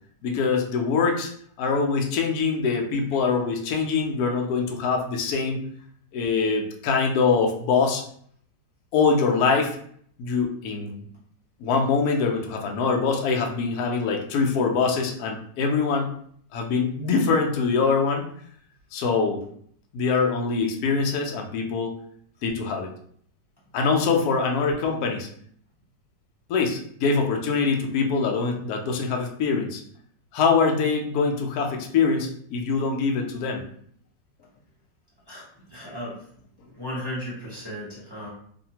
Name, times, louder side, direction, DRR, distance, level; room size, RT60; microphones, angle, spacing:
voice 1, 0.2-1.3 1.6-5.7 6.1-8.0 8.9-9.8 10.2-11.1 11.6-16.1 16.5-18.2 18.9-19.4 19.9-21.9 22.4-22.9 23.7-25.3 26.5-29.8 30.3-33.6, left 5 dB, 70° left, 2 dB, 1.0 m, -24 dB
voice 2, 35.3-36.2 36.7-38.3, equal, 20° left, -8 dB, 0.8 m, -35 dB
2.7 x 2.5 x 2.8 m, 0.62 s
omnidirectional pair, 1.9 m